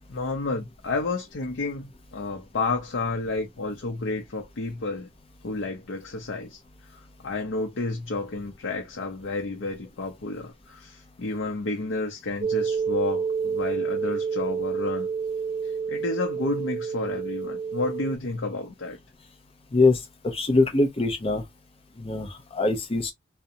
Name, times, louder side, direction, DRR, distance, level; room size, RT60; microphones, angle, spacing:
voice 1, 0.1-5.1 5.4-6.6 6.9-15.1 15.6-19.0, left 3 dB, 85° left, 0.6 m, -31 dB
sound 1, 12.4-18.2, right 6 dB, 50° right, 0.5 m, -29 dB
voice 2, 19.7-21.4 22.0-23.1, left 3 dB, 30° left, 0.6 m, -23 dB
2.5 x 2.1 x 2.6 m
head